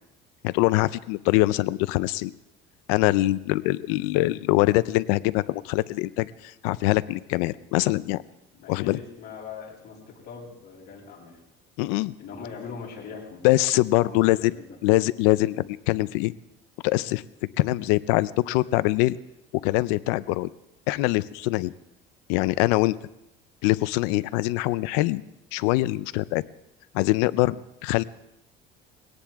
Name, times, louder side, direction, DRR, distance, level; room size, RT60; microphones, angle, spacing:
voice 1, 0.4-2.3 2.9-8.2 8.7-9.0 11.8-12.1 13.4-14.5 14.8-16.3 16.8-17.2 17.6-19.2 19.6-20.5 20.9-21.7 22.3-23.0 23.6-25.2 25.5-26.4 26.9-28.0, left 19 dB, 90° left, 16 dB, 0.6 m, -23 dB
voice 2, 8.5-11.4 12.2-13.4 14.0-14.8, left 5 dB, 55° left, -3 dB, 7.9 m, -41 dB
21.5 x 17.5 x 3.6 m, 0.87 s
cardioid pair, 110°, 20 cm